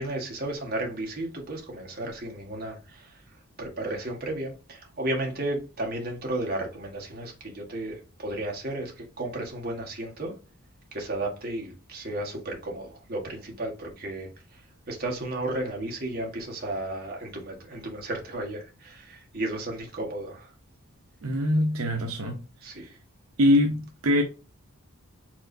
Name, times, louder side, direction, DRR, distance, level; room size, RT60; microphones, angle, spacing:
voice 1, 0.0-10.4 10.9-20.5 22.6-22.9, right 1 dB, 45° right, 1.5 m, -34 dB
voice 2, 21.2-22.4 22.7-22.9 23.4-24.2, left 1 dB, 75° right, 0.8 m, -23 dB
4.6 x 3.9 x 2.6 m
head